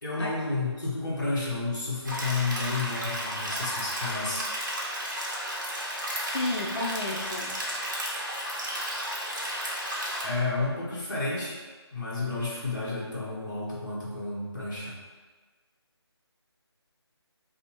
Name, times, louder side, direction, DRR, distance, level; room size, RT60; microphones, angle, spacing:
voice 1, 0.0-4.5 10.2-11.6 11.9-15.0, left 3 dB, 45° left, -7 dB, 1.1 m, -31 dB
sound 1, 2.1-10.3, equal, 45° right, 0.8 m, -33 dB
voice 2, 6.3-7.5, left 2 dB, 75° left, -3 dB, 0.5 m, -32 dB
5.2 x 2.1 x 2.9 m, 1.4 s
figure-of-eight pair, 175°, 14 cm